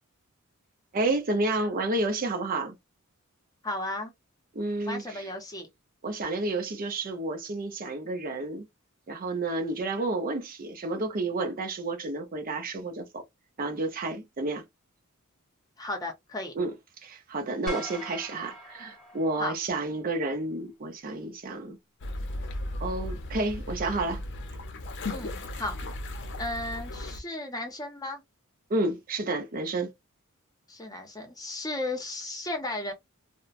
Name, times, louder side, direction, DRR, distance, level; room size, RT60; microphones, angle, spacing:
voice 1, 0.9-2.8 4.5-5.3 6.0-8.7 9.1-13.2 13.6-14.6 16.6-16.8 17.0-21.8 22.8-24.2 28.7-29.9, right 2 dB, 40° right, 0.6 m, -30 dB
voice 2, 3.6-4.1 4.9-5.7 15.8-16.5 19.4-19.5 25.1-25.8 26.4-28.2 30.7-32.9, left 2 dB, 15° left, 0.7 m, -34 dB
sound 1, 17.7-20.0, right 1 dB, ahead, 1.4 m, -41 dB
sound 2, 22.0-27.2, left 1 dB, 55° left, 0.6 m, -36 dB
2.9 x 2.1 x 2.4 m
head